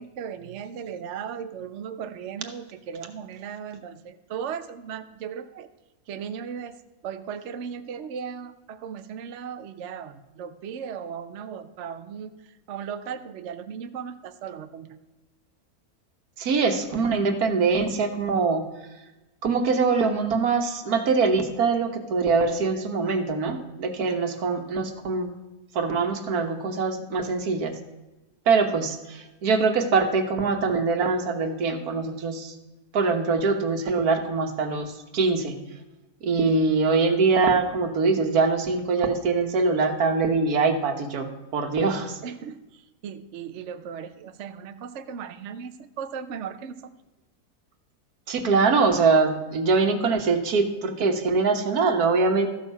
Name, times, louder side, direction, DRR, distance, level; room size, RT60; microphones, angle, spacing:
voice 1, 0.0-5.7 6.1-6.8 7.0-15.0 24.2-24.3 28.8-28.9 42.2-46.9, right 7 dB, 60° right, 9 dB, 0.9 m, -37 dB
voice 2, 16.4-18.6 19.4-25.3 25.7-27.7 28.5-32.5 32.9-35.5 36.2-41.2 41.5-42.2 48.3-52.5, right 4 dB, 80° right, 6 dB, 1.6 m, -23 dB
14.0 x 6.5 x 5.4 m, 1.1 s
omnidirectional pair, 1.6 m